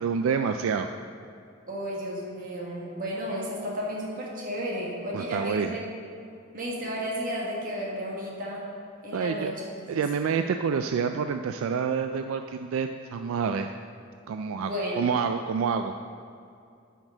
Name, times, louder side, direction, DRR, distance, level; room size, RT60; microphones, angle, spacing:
voice 1, 0.0-0.9 5.1-5.8 9.1-9.6 9.9-13.7 14.3-14.7 15.0-16.0, right 6 dB, 75° right, 7 dB, 0.3 m, -28 dB
voice 2, 1.7-5.8 6.5-8.7 9.0-9.6 14.6-15.1, equal, 45° right, -3 dB, 1.7 m, -33 dB
10.5 x 6.0 x 3.9 m, 2.5 s
head